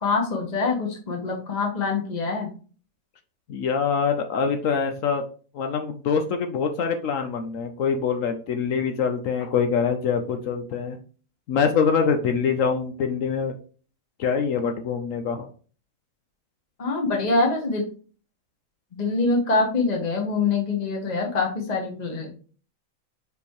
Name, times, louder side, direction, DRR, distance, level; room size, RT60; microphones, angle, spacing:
voice 1, 0.0-2.5 16.8-17.8 18.9-22.3, left 3 dB, 30° left, 1 dB, 1.3 m, -24 dB
voice 2, 3.5-5.2 5.5-11.0 11.5-13.5 14.2-15.5, left 6 dB, 75° left, 6 dB, 1.1 m, -24 dB
5.2 x 5.0 x 4.5 m, 0.40 s
omnidirectional pair, 1.4 m